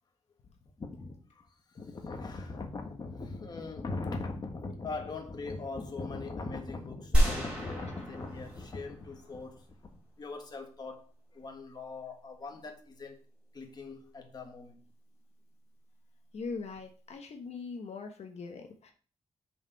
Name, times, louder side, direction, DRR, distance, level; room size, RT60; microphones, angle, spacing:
voice 1, 0.8-9.6 10.2-13.2 13.5-14.8, left 3 dB, 35° left, 1.3 m, -40 dB
sound 1, 7.1-9.5, right 1 dB, 10° right, 3.6 m, -29 dB
voice 2, 16.3-18.9, left 4 dB, 70° left, 1.1 m, -41 dB
6.7 x 4.9 x 5.4 m
wide cardioid pair, 150°, 11 cm